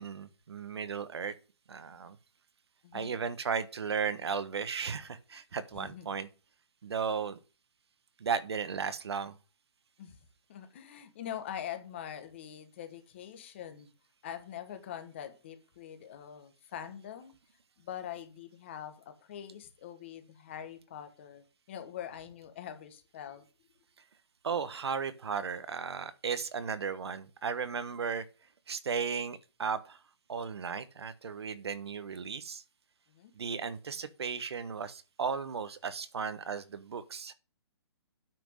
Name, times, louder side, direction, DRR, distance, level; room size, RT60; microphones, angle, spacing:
voice 1, 0.0-1.3 1.7-2.2 2.9-6.3 6.8-7.4 8.2-9.4 24.4-28.3 28.7-30.0 30.3-32.6 33.4-37.3, right 6 dB, 65° right, 1.2 m, -35 dB
voice 2, 5.7-6.1 10.0-10.2 10.5-13.9 14.2-17.3 17.8-23.4 33.1-33.3, left 9 dB, 25° left, 1.3 m, -44 dB
9.1 x 6.1 x 6.3 m
hypercardioid pair, 175°, 15 cm